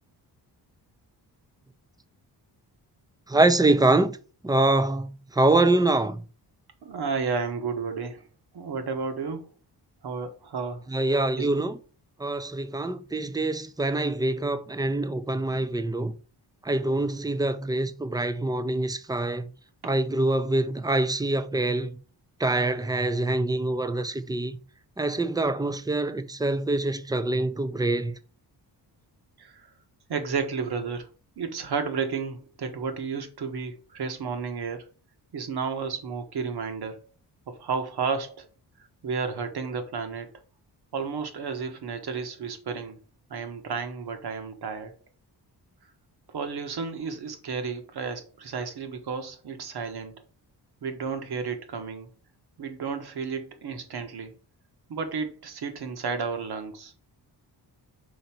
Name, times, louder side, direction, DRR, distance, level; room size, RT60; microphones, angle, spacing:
voice 1, 3.3-4.2 4.4-6.2 10.9-11.8 12.2-16.1 16.6-19.5 19.8-22.0 22.4-24.6 25.0-28.2, right 2 dB, 10° right, 0.5 m, -25 dB
voice 2, 6.8-8.2 8.5-9.5 10.0-10.9 11.4-11.5 19.8-19.9 29.4-29.7 30.1-31.1 31.4-34.8 35.3-37.0 37.5-38.4 39.0-40.3 40.9-43.0 43.3-44.9 46.3-50.2 50.8-52.1 52.6-54.3 54.9-56.9, right 5 dB, 70° right, 1.5 m, -32 dB
5.5 x 4.1 x 5.9 m
wide cardioid pair, 115°, 40 cm